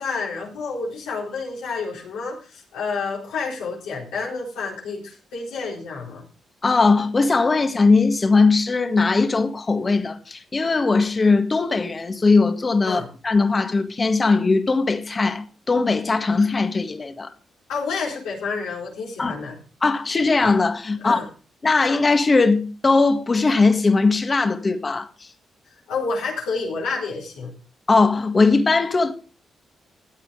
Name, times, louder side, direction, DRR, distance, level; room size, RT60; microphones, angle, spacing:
voice 1, 0.0-6.2 12.9-13.1 17.7-19.6 21.0-21.3 25.9-27.5, left 4 dB, 85° left, 3.9 m, -29 dB
voice 2, 6.6-17.3 19.2-19.4 19.8-21.2 21.6-25.3 27.9-29.1, left 3 dB, 35° left, 1.8 m, -19 dB
15.0 x 8.8 x 4.9 m
supercardioid pair, 55°, 0 cm